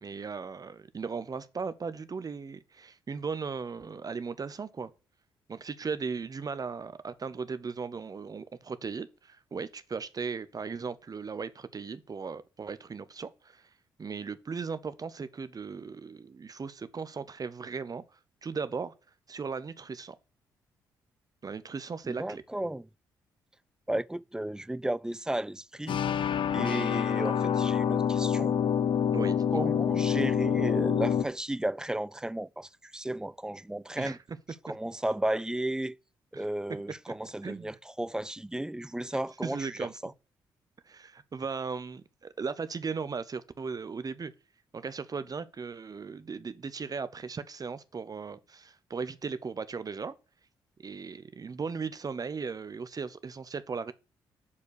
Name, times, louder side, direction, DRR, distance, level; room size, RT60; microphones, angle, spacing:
voice 1, 0.0-4.9 5.5-13.6 14.0-18.9 19.3-20.2 21.4-22.4 29.1-29.7 34.0-34.4 36.3-36.4 37.4-37.8 39.1-39.9 40.9-44.3 44.7-50.1 50.8-53.9, right 5 dB, 35° right, 0.8 m, -37 dB
voice 2, 22.1-22.9 23.9-26.0 26.5-28.6 29.5-34.2 34.6-36.0 36.3-40.1, right 1 dB, 5° right, 0.3 m, -34 dB
sound 1, 25.9-31.3, left 8 dB, 55° left, 0.6 m, -27 dB
7.2 x 4.6 x 6.4 m
hypercardioid pair, 45°, 10 cm